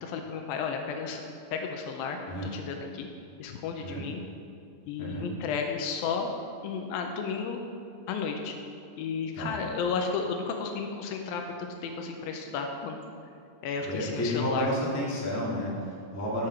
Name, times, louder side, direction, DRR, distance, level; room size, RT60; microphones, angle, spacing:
voice 1, 0.0-2.2 2.5-3.1 3.4-4.2 4.9-6.3 6.6-7.6 8.1-8.6 9.0-13.0 13.6-14.7, left 5 dB, 90° left, 3 dB, 2.5 m, -33 dB
voice 2, 13.8-16.5, equal, 10° left, -5 dB, 0.7 m, -31 dB
13.5 x 6.6 x 4.4 m, 2.4 s
omnidirectional pair, 4.1 m